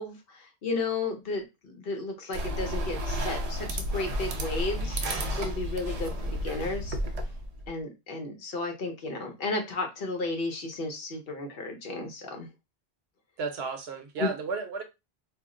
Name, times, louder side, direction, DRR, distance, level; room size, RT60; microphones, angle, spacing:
voice 1, 0.0-6.1 6.4-7.0 7.7-12.5 14.2-14.3, left 3 dB, 60° left, 0.9 m, -33 dB
sound 1, 2.3-7.7, equal, 50° right, 0.5 m, -32 dB
voice 2, 13.4-14.8, right 4 dB, 75° right, 0.9 m, -33 dB
2.4 x 2.0 x 3.6 m
omnidirectional pair, 1.1 m